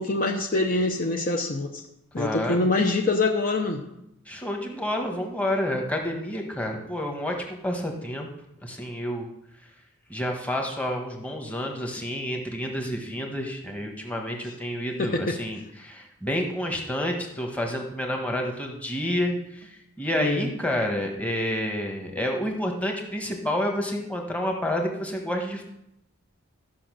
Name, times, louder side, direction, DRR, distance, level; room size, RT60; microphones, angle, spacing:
voice 1, 0.0-1.8 2.1-3.8 15.0-15.4 20.2-20.5, left 2 dB, 40° left, 3 dB, 0.8 m, -25 dB
voice 2, 2.2-2.7 4.3-8.3 8.6-9.3 10.1-25.6, equal, 5° left, 1 dB, 1.3 m, -29 dB
12.5 x 6.1 x 6.2 m, 0.82 s
head